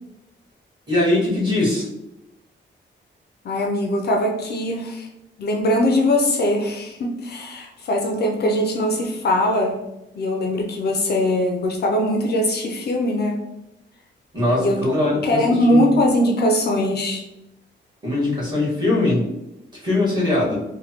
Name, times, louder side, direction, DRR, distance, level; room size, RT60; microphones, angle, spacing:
voice 1, 0.9-1.9 14.3-15.9 18.0-19.3 19.7-20.6, left 2 dB, 20° right, -7 dB, 1.3 m, -21 dB
voice 2, 3.4-5.1 5.4-9.8 10.1-13.4 14.6-14.8 15.2-17.2, left 1 dB, 55° left, 2 dB, 0.4 m, -21 dB
3.1 x 2.1 x 2.8 m, 0.89 s
wide cardioid pair, 165°, 20 cm